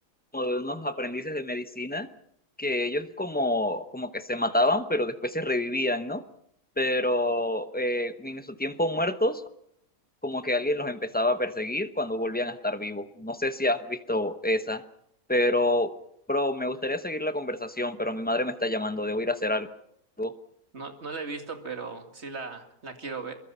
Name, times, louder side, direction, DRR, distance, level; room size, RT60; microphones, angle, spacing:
voice 1, 0.3-2.1 2.6-6.2 6.8-9.4 10.2-14.8 15.3-15.9 16.3-19.7 20.2-20.3, left 1 dB, 10° left, 10 dB, 0.7 m, -28 dB
voice 2, 20.7-23.3, right 4 dB, 40° right, 6 dB, 2.4 m, -37 dB
26.5 x 22.5 x 5.6 m, 0.73 s
omnidirectional pair, 1.7 m